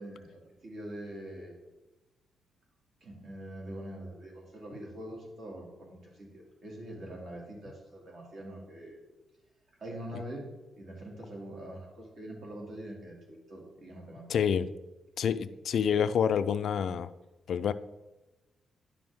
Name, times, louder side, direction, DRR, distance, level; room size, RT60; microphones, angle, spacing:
voice 1, 0.0-1.6 3.0-9.0 9.8-10.5 10.8-14.4, right 1 dB, 55° right, -1 dB, 2.4 m, -44 dB
voice 2, 14.3-14.7 15.2-17.1 17.5-17.7, left 7 dB, 65° left, 12 dB, 0.3 m, -27 dB
10.0 x 6.1 x 3.6 m, 1.1 s
cardioid pair, 130°, 0 cm